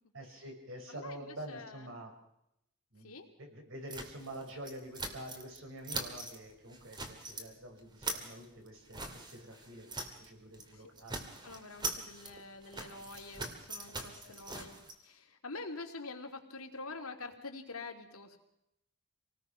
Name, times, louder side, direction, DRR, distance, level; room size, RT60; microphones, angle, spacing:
voice 1, 0.1-2.1 2.9-11.4 14.2-14.3, right 1 dB, 65° right, 3 dB, 5.7 m, -47 dB
voice 2, 0.9-1.9 3.0-3.2 10.7-10.8 11.4-14.8 15.0-18.4, left 3 dB, 80° left, 4 dB, 3.0 m, -46 dB
sound 1, 3.9-5.6 5.8-6.4 6.7-7.5 7.8-10.3 10.5-10.7 11.0-14.9, right 2 dB, 20° right, 2.3 m, -42 dB
27.0 x 19.0 x 5.8 m, 0.81 s
head